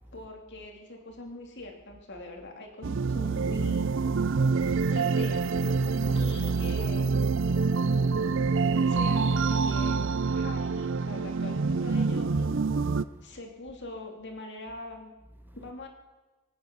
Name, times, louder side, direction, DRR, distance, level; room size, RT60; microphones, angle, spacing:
voice 1, 0.1-3.9 4.9-5.4 6.1-7.3 8.9-10.0 10.2-12.6 13.2-15.1 15.5-15.9, left 2 dB, 50° left, 2.6 m, -43 dB
sound 1, 2.8-13.0, right 4 dB, 55° right, 0.5 m, -26 dB
voice 2, 5.9-6.2 7.5-9.0 12.7-13.4 15.4-15.6, right 1 dB, 10° right, 0.8 m, -56 dB
24.5 x 9.4 x 6.1 m
head